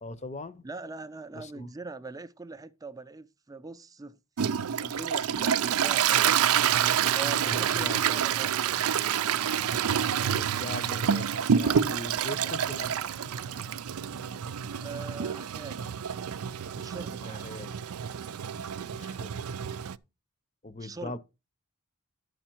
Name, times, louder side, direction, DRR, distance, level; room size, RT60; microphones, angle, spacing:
voice 1, 0.0-0.6 1.3-1.7 7.3-8.0 10.2-13.2 17.2-17.8 18.8-19.6 20.6-21.2, left 2 dB, 30° left, 0.7 m, -41 dB
voice 2, 0.6-4.2 4.7-6.4 7.1-8.8 14.8-16.0 16.6-17.5 20.8-21.2, right 3 dB, 15° right, 0.5 m, -42 dB
Toilet flush, 4.4-20.0, right 8 dB, 85° right, 0.5 m, -28 dB
11.0 x 6.5 x 4.5 m
head